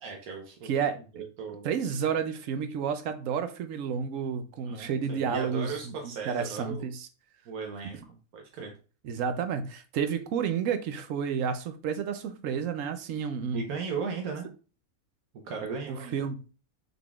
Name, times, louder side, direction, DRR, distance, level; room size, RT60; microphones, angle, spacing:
voice 1, 0.0-0.7 1.1-1.7 4.7-6.9 7.5-8.8 13.5-14.5 15.4-16.3, right 5 dB, 85° right, 1.3 m, -37 dB
voice 2, 0.6-1.2 1.6-7.1 9.0-13.6 15.9-16.3, right 7 dB, 70° right, 0.9 m, -31 dB
5.7 x 3.6 x 2.3 m
omnidirectional pair, 1.5 m